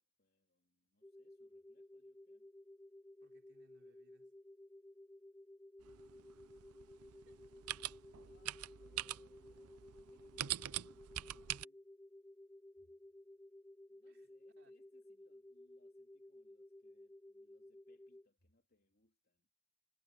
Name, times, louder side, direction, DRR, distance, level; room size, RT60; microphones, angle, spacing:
voice 1, 0.0-2.5 8.2-11.9 12.8-12.9 13.9-19.5, left 2 dB, 45° left, 3.7 m, -77 dB
sound 1, 1.0-18.3, left 1 dB, 10° left, 0.9 m, -57 dB
voice 2, 3.2-4.4 7.1-7.7 14.1-14.3 14.6-14.7, right 2 dB, 55° right, 4.0 m, -73 dB
sound 2, 5.8-11.7, right 13 dB, 85° right, 0.6 m, -45 dB
head